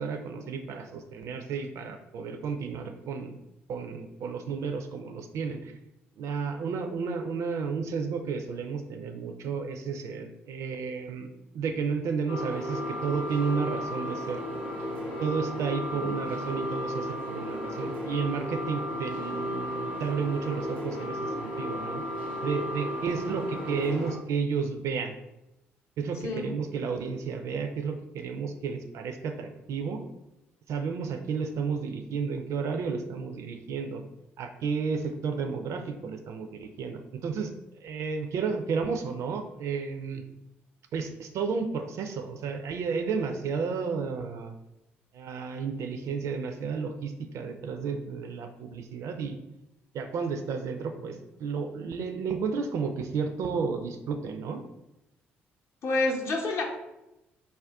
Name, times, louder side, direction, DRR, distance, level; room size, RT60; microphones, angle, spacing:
voice 1, 0.0-3.4 3.7-5.7 6.2-11.3 11.5-14.4 15.2-22.0 22.4-25.1 26.0-30.0 30.7-34.0 34.4-37.5 37.8-40.2 40.9-44.5 45.1-49.4 49.9-54.6, right 5 dB, 55° right, 6 dB, 0.4 m, -32 dB
sound 1, 12.3-24.2, equal, 90° left, 0.6 m, -34 dB
voice 2, 55.8-56.6, left 2 dB, 50° left, 0 dB, 0.7 m, -28 dB
2.5 x 2.2 x 3.4 m, 0.93 s
hypercardioid pair, 50°, 6 cm